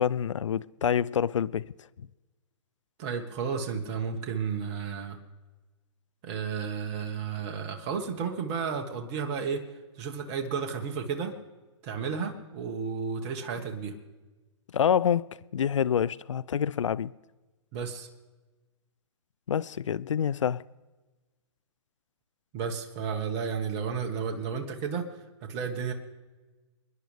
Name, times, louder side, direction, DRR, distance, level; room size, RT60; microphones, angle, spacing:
voice 1, 0.0-1.7 14.7-17.1 19.5-20.6, left 8 dB, 80° left, 0.4 m, -27 dB
voice 2, 3.0-5.2 6.2-9.6 9.9-11.4 11.8-13.9 17.7-18.1 22.5-25.1 25.4-25.9, right 6 dB, 35° right, 1.5 m, -32 dB
28.5 x 10.5 x 3.3 m
hypercardioid pair, 130°, 15 cm